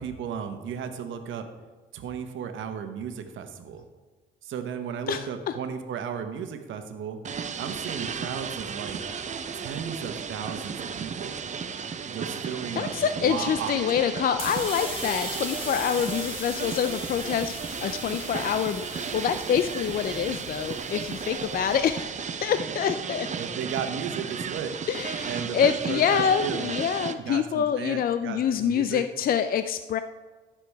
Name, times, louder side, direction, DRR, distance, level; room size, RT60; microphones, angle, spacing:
voice 1, 0.0-1.5 1.9-3.8 4.4-7.2 7.6-9.0 9.5-11.4 12.1-13.7 23.4-24.7 25.3-26.7 27.2-29.0, right 7 dB, 75° right, 7 dB, 1.1 m, -34 dB
voice 2, 5.1-5.6 12.4-23.3 24.9-30.0, left 8 dB, 50° left, 10 dB, 0.4 m, -26 dB
sound 1, 7.2-27.1, right 6 dB, 35° right, 0.6 m, -34 dB
sound 2, 14.3-21.8, left 1 dB, 25° left, 2.7 m, -39 dB
14.5 x 6.0 x 3.4 m, 1.3 s
cardioid pair, 90°, 20 cm